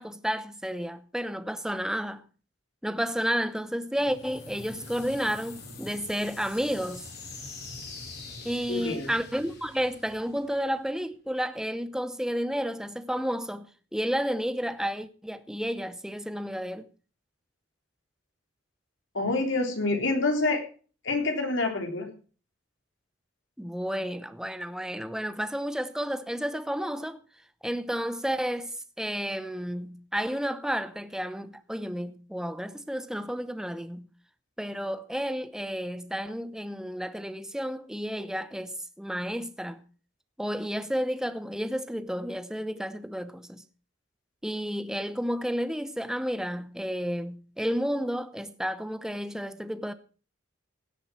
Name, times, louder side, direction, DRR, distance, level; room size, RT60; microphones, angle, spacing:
voice 1, 0.0-2.2 2.8-7.1 8.4-16.8 23.6-27.2 27.6-34.1 34.6-39.8 40.4-43.6 44.4-49.9, equal, 5° right, 0.8 m, -31 dB
sound 1, 4.0-10.9, left 3 dB, 55° left, 5.0 m, -44 dB
voice 2, 8.7-9.1 19.1-20.6 21.0-22.1, left 2 dB, 75° left, 3.5 m, -27 dB
17.0 x 7.7 x 6.1 m
head